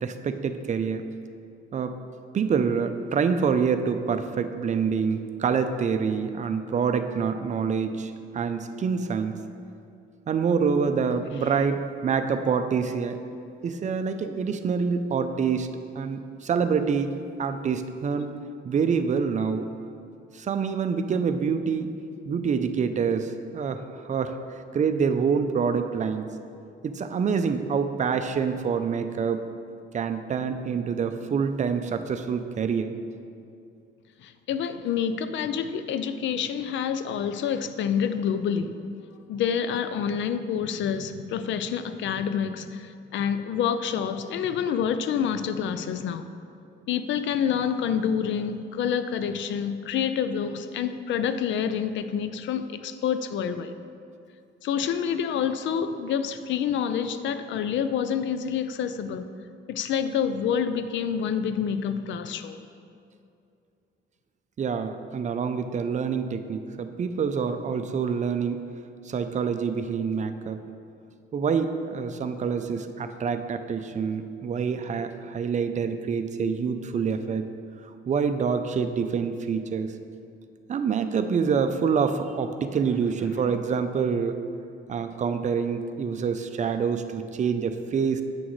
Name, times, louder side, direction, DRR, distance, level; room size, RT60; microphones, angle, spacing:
voice 1, 0.0-1.0 1.7-2.0 2.3-9.4 10.3-13.2 13.6-17.1 17.4-18.3 18.6-19.7 20.3-21.9 22.3-24.4 24.7-26.2 26.8-29.4 29.9-32.9 64.6-68.6 69.0-70.6 71.3-77.5 77.8-79.9 80.7-84.4 84.9-88.2, right 6 dB, 35° right, 8 dB, 0.5 m, -26 dB
voice 2, 34.2-38.8 39.3-46.3 46.9-53.7 54.6-59.3 59.7-62.6, left 7 dB, 70° left, 11 dB, 0.4 m, -27 dB
8.5 x 6.2 x 3.1 m, 2.5 s
cardioid pair, 90°, 20 cm